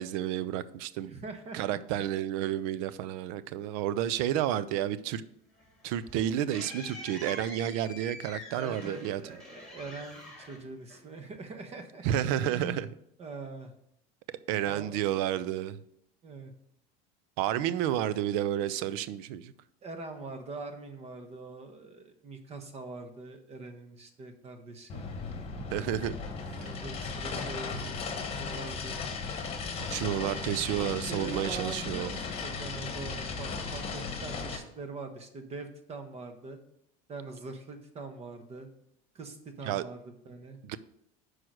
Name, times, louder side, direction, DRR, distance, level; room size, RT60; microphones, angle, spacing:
voice 1, 0.0-1.1 1.5-5.2 5.8-9.2 12.0-12.9 14.5-15.8 17.4-19.5 25.5-26.1 29.9-32.1 39.6-39.8 40.6-40.8, right 11 dB, 75° right, 0.5 m, -31 dB
voice 2, 1.0-2.0 8.5-12.1 12.5-12.9 13.2-13.7 14.6-15.0 16.2-16.5 17.6-17.7 19.8-25.0 26.4-29.2 30.2-30.4 31.1-36.6 37.1-38.7 39.1-40.6, right 3 dB, 35° right, 1.1 m, -43 dB
sound 1, 5.5-11.4, left 1 dB, 5° left, 2.5 m, -46 dB
sound 2, 24.9-34.6, left 4 dB, 30° left, 1.3 m, -36 dB
6.2 x 4.7 x 6.2 m
supercardioid pair, 120°, 19 cm